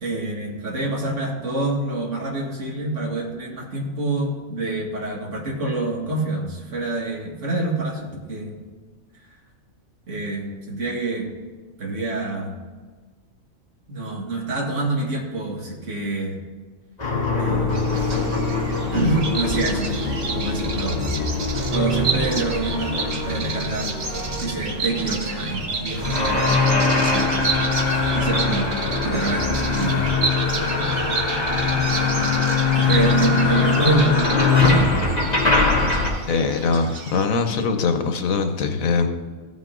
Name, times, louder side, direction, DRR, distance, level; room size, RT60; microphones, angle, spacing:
voice 1, 0.0-8.6 10.1-11.3 11.8-12.6 13.9-16.4 17.4-17.8 18.9-19.9 20.3-21.0 21.7-24.0 24.4-27.5 28.1-28.7 29.0-30.1 32.1-32.5 32.7-35.2, right 2 dB, 60° right, -1 dB, 2.1 m, -26 dB
sound 1, 17.0-25.0 26.0-36.1, left 4 dB, 30° left, 1.8 m, -22 dB
Bird vocalization bird call bird song, 17.7-37.3, right 4 dB, 45° right, 1.2 m, -31 dB
sound 2, 17.8-35.3, equal, 30° right, 1.4 m, -33 dB
voice 2, 36.3-39.1, left 4 dB, 80° left, 6 dB, 1.3 m, -22 dB
15.5 x 5.7 x 3.8 m, 1.4 s
omnidirectional pair, 1.4 m